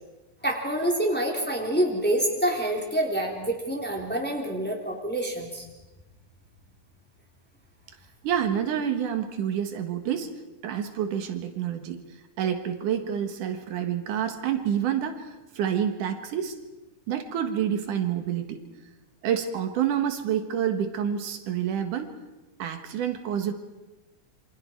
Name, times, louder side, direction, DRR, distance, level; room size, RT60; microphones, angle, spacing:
voice 1, 0.4-5.6, right 1 dB, 5° left, -1 dB, 3.2 m, -27 dB
voice 2, 8.2-10.3 10.6-12.0 12.4-16.6 17.1-18.6 19.2-22.1 22.6-23.5, right 9 dB, 75° right, 6 dB, 3.0 m, -28 dB
28.0 x 25.5 x 4.6 m, 1.1 s
omnidirectional pair, 3.7 m